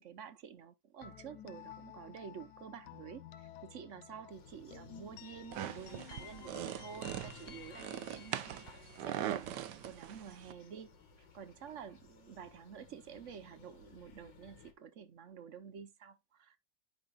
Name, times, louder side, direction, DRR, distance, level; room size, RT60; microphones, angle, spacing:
voice 1, 0.0-10.9 11.2-16.6, right 7 dB, 55° right, 0.9 m, -50 dB
sound 1, 1.0-10.8, left 10 dB, 70° left, 1.3 m, -54 dB
sound 2, 4.3-14.7, left 5 dB, 85° left, 2.5 m, -60 dB
sound 3, 5.5-10.5, right 11 dB, 75° right, 1.3 m, -42 dB
10.5 x 5.5 x 2.3 m
omnidirectional pair, 1.9 m